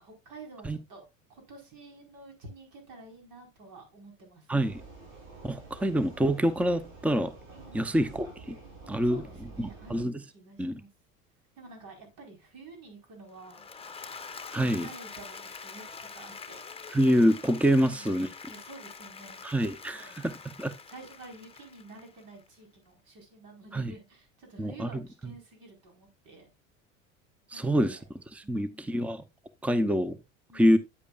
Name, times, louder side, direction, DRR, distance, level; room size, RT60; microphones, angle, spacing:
voice 1, 0.0-4.5 7.5-8.2 9.0-10.1 10.3-10.9 11.6-13.6 14.6-16.6 18.5-19.4 19.9-20.2 20.9-26.5 27.5-28.0 28.4-29.1 30.5-30.8, right 3 dB, 60° right, 5.0 m, -50 dB
voice 2, 4.5-4.8 5.4-7.3 7.7-8.5 8.9-9.2 9.6-10.2 10.6-10.8 14.5-14.9 16.9-18.3 19.4-20.7 23.7-23.9 24.6-24.9 27.5-28.0 28.3-29.2 29.6-30.2 30.5-30.8, equal, 5° right, 0.8 m, -26 dB
Vehicle, 4.6-10.0, right 3 dB, 75° right, 5.9 m, -48 dB
Applause / Crowd, 13.3-22.5, left 5 dB, 15° left, 1.1 m, -45 dB
9.7 x 8.4 x 2.5 m
hypercardioid pair, 80°, 39 cm